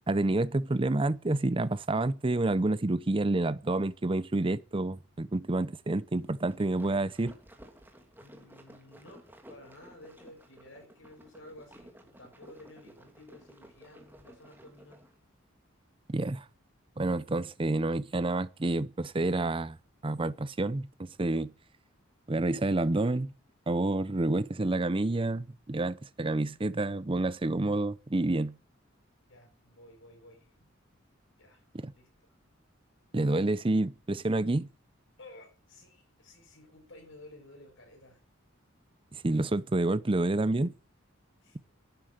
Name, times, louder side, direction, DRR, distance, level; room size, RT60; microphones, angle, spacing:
voice 1, 0.1-7.4 16.1-16.4 17.0-19.8 20.0-21.5 22.3-23.3 23.7-28.5 31.7-31.9 33.1-34.7 39.1-40.7, right 2 dB, 25° right, 0.6 m, -29 dB
sound 1, 6.2-15.1, right 1 dB, 10° right, 2.6 m, -54 dB
voice 2, 8.2-15.1 29.3-30.5 31.4-31.7 32.0-32.1 35.2-38.2 41.4-41.6, left 1 dB, 65° left, 6.1 m, -53 dB
11.5 x 9.5 x 7.9 m
head